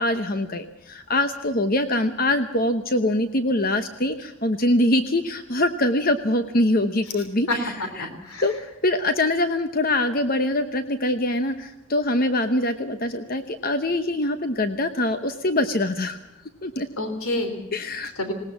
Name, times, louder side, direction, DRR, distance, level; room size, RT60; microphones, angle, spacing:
voice 1, 0.0-8.1 8.4-16.2 16.6-16.9 17.7-18.1, left 1 dB, 40° left, 9 dB, 1.0 m, -24 dB
voice 2, 7.5-8.5 17.0-17.6 18.2-18.3, left 1 dB, 85° left, 7 dB, 3.3 m, -28 dB
20.0 x 19.0 x 7.2 m, 0.97 s
head